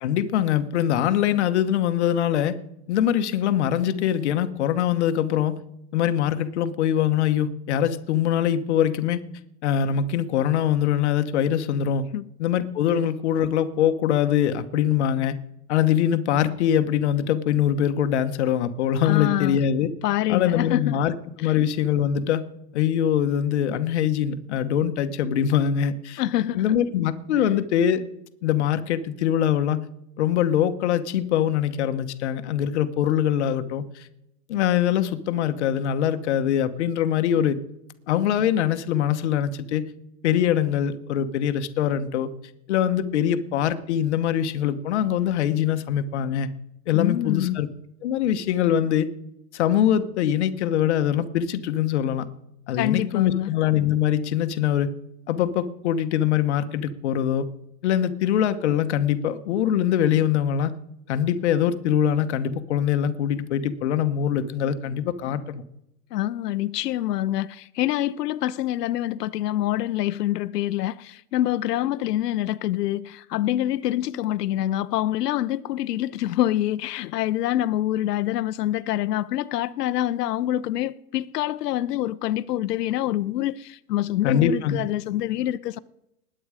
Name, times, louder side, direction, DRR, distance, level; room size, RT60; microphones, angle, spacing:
voice 1, 0.0-2.6 2.9-5.6 5.9-9.2 9.6-12.0 12.4-15.4 15.7-19.9 20.3-21.1 21.4-22.4 22.7-26.2 26.5-28.0 28.4-29.8 30.2-34.1 34.5-37.6 38.1-39.9 40.2-42.3 42.7-46.5 46.9-47.7 48.0-49.1 49.5-52.2 52.7-54.9 55.3-57.5 57.8-60.7 61.1-65.6 84.2-84.8, left 10 dB, 45° left, 1.0 m, -23 dB
voice 2, 19.0-19.6 20.0-21.0 21.4-21.5 26.2-26.7 46.9-47.6 52.7-53.5 66.1-85.8, left 13 dB, 90° left, 0.7 m, -26 dB
19.5 x 8.8 x 4.9 m
supercardioid pair, 175°, 46 cm